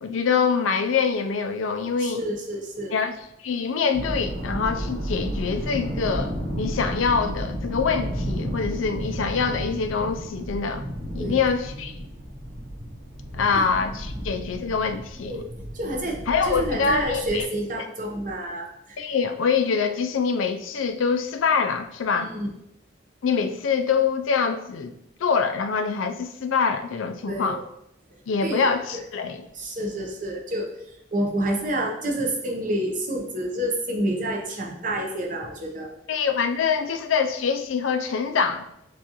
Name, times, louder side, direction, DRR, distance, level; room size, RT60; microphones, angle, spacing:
voice 1, 0.0-2.2 2.9-3.2 3.4-10.8 11.1-11.9 13.3-15.4 16.3-17.5 17.8-17.9 19.0-22.3 23.2-24.9 25.2-27.6 28.3-29.4 36.1-38.6, left 5 dB, 85° left, 7 dB, 0.4 m, -25 dB
voice 2, 2.0-3.0 11.2-11.4 13.5-13.6 15.2-15.5 15.7-19.0 22.1-22.5 27.2-27.6 28.4-28.7 28.9-29.0 29.5-35.9, right 1 dB, 40° right, 0 dB, 0.7 m, -29 dB
sound 1, 3.9-17.4, equal, 85° right, 1.2 m, -32 dB
6.7 x 2.5 x 2.9 m, 0.79 s
head